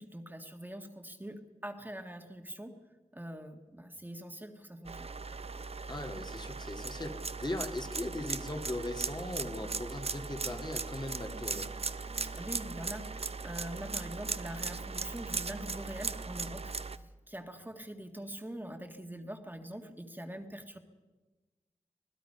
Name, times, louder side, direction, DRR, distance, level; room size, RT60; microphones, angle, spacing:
voice 1, 0.0-2.8 3.1-5.1 12.2-20.8, right 1 dB, 15° right, 4 dB, 1.7 m, -44 dB
sound 1, 4.8-17.0, right 4 dB, 50° right, 0.7 m, -38 dB
voice 2, 5.9-11.7, left 1 dB, 35° left, 3 dB, 2.1 m, -39 dB
sound 2, 8.7-16.6, right 1 dB, 80° right, 3.0 m, -59 dB
26.0 x 19.0 x 5.6 m, 1.2 s
wide cardioid pair, 85°, 13 cm